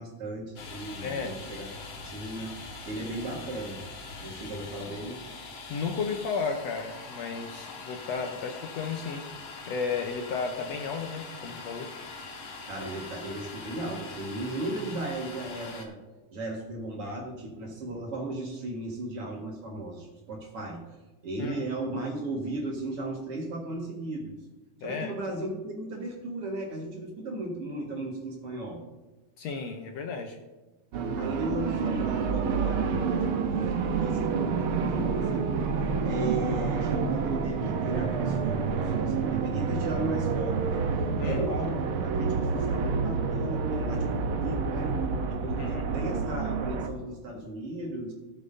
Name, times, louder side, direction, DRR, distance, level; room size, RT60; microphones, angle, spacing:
voice 1, 0.0-1.7 2.0-3.8 4.2-5.2 12.7-16.0 16.3-20.8 21.2-24.4 24.8-28.8 31.2-35.7 36.0-44.9 45.3-48.1, right 2 dB, 50° right, 0 dB, 2.5 m, -36 dB
Domestic sounds home sounds, 0.6-15.9, left 4 dB, 55° left, 1.8 m, -42 dB
voice 2, 1.0-1.4 5.7-9.3 9.7-11.9 21.4-21.6 24.8-25.1 29.4-30.4 41.2-41.5 45.6-45.9, left 5 dB, 70° left, 3 dB, 1.8 m, -33 dB
sound 1, 30.9-46.9, right 5 dB, 75° right, 1.2 m, -28 dB
17.5 x 7.5 x 2.7 m, 1.2 s
omnidirectional pair, 3.5 m